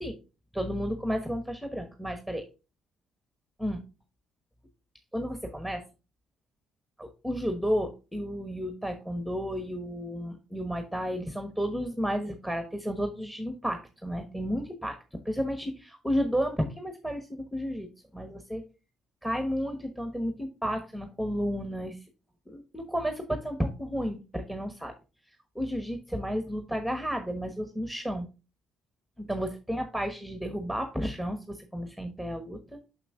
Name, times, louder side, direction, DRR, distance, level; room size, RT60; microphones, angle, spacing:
voice 1, 0.5-2.4 3.6-3.8 5.1-5.8 7.0-18.6 19.2-22.0 22.5-24.9 25.3-28.3 29.2-32.8, equal, 5° left, 7 dB, 1.1 m, -32 dB
6.2 x 5.9 x 3.6 m, 0.30 s
hypercardioid pair, 55°, 0 cm